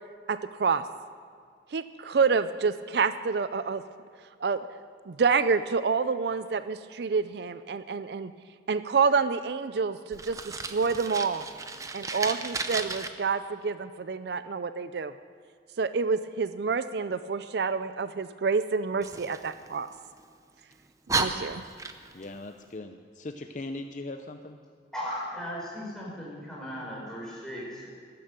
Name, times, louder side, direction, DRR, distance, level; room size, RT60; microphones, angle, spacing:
voice 1, 0.3-0.8 1.7-3.8 4.4-4.6 5.1-8.3 8.7-11.4 11.9-15.1 15.8-19.9 21.2-21.6, right 5 dB, 60° right, 12 dB, 0.4 m, -28 dB
Fire, 10.1-13.1 19.0-20.2 20.7-20.8 21.1-22.3, right 3 dB, 20° right, 0.7 m, -33 dB
voice 2, 21.2-21.5 22.1-24.6, left 2 dB, 40° left, 6 dB, 0.6 m, -40 dB
voice 3, 24.9-27.9, equal, 5° left, -5 dB, 4.9 m, -37 dB
15.5 x 12.5 x 6.8 m, 2.1 s
head